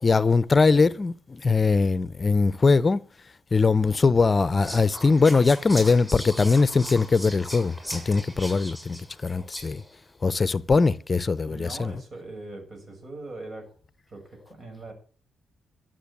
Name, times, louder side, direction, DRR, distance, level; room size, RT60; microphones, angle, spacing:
voice 1, 0.0-3.0 3.5-9.8 10.2-11.9, left 4 dB, 35° left, 0.7 m, -21 dB
Whispering, 4.6-9.9, equal, ahead, 7.0 m, -38 dB
voice 2, 11.4-13.7 14.1-14.9, right 2 dB, 50° right, 6.2 m, -41 dB
12.0 x 7.8 x 8.4 m
supercardioid pair, 60°, 0 cm